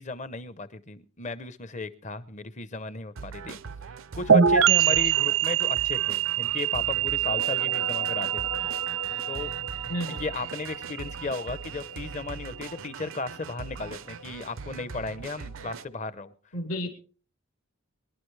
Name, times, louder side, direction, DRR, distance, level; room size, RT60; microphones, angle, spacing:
voice 1, 0.0-3.6 4.2-8.7 9.3-9.5 10.1-16.3, left 3 dB, 35° left, 15 dB, 0.7 m, -35 dB
sound 1, 3.1-15.8, right 5 dB, 65° right, 0.5 m, -41 dB
sound 2, 4.3-11.8, right 8 dB, 80° right, 0.9 m, -25 dB
voice 2, 4.8-5.3 9.9-10.3 16.5-16.9, equal, 90° left, 3 dB, 2.4 m, -33 dB
sound 3, 6.9-16.3, left 2 dB, 60° left, 0.8 m, -43 dB
24.0 x 11.0 x 3.3 m, 0.38 s
head